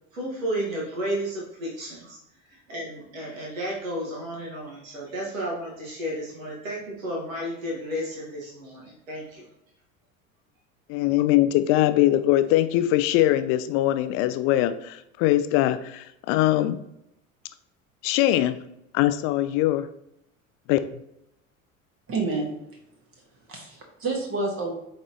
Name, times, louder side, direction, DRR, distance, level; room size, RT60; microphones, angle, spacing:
voice 1, 0.1-2.2 2.4-9.4, equal, 70° right, -2 dB, 1.7 m, -32 dB
voice 2, 10.9-16.8 18.0-18.6 18.9-19.9 20.7-20.8, left 14 dB, 35° left, 11 dB, 0.4 m, -22 dB
voice 3, 22.1-22.5 23.5-24.7, right 3 dB, 30° right, 1 dB, 1.4 m, -28 dB
8.3 x 4.1 x 2.9 m, 0.82 s
figure-of-eight pair, 70°, 41 cm